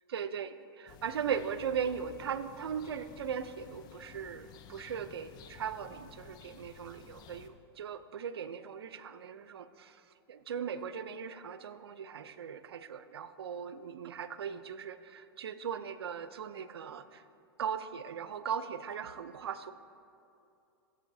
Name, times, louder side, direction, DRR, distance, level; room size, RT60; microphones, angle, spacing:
voice 1, 0.1-0.5 1.0-10.0 10.3-17.2 17.6-19.7, right 7 dB, 85° right, 13 dB, 0.5 m, -38 dB
sound 1, 0.9-7.5, left 7 dB, 35° left, 0.6 m, -54 dB
16.0 x 7.4 x 2.7 m, 2.7 s
hypercardioid pair, 120°, 13 cm